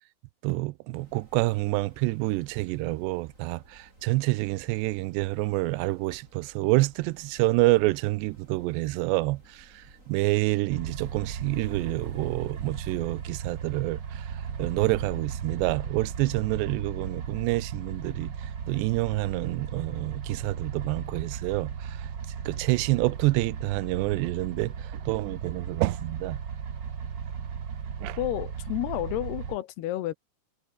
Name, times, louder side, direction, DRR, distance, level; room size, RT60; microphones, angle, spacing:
voice 1, 0.4-22.1 22.5-26.4 28.0-28.2, right 21 dB, 90° right, 2.8 m, -28 dB
sound 1, 0.9-10.6, right 2 dB, 15° right, 6.9 m, -56 dB
sound 2, 10.7-29.6, right 7 dB, 55° right, 1.2 m, -36 dB
voice 2, 28.2-30.1, left 14 dB, 75° left, 3.0 m, -30 dB
omnidirectional pair, 5.0 m